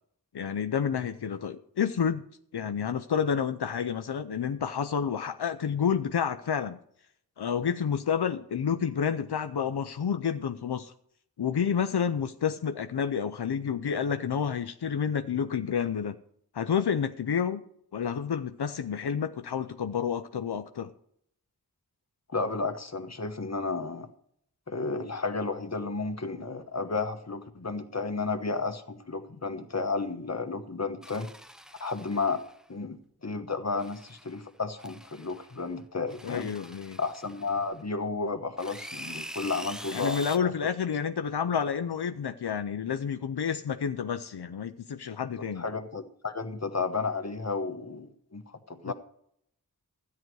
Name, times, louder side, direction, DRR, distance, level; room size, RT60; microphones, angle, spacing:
voice 1, 0.3-2.2 2.5-6.8 7.4-10.9 11.4-16.2 16.5-17.6 17.9-20.9 36.2-37.0 39.9-45.6 48.9-49.0, left 7 dB, 85° left, 8 dB, 0.6 m, -29 dB
voice 2, 22.3-24.1 24.7-31.3 31.8-32.4 32.7-36.5 37.0-40.5 45.6-48.9, left 4 dB, 45° left, 7 dB, 1.3 m, -32 dB
sound 1, 31.0-32.6 33.8-34.4 34.8-35.6 36.1-37.8 38.6-40.4, equal, ahead, 0.6 m, -44 dB
13.0 x 9.5 x 4.7 m, 0.68 s
wide cardioid pair, 55°, 39 cm